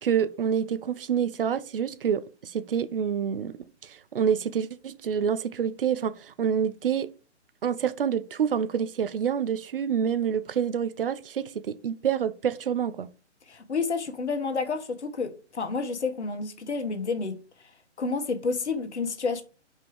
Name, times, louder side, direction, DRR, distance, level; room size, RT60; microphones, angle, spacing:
voice 1, 0.0-7.1 7.6-13.1, right 8 dB, 50° right, 0.7 m, -27 dB
voice 2, 13.5-17.7 18.0-19.4, left 4 dB, 70° left, 1.6 m, -30 dB
5.4 x 5.1 x 4.9 m
hypercardioid pair, 145°, 35 cm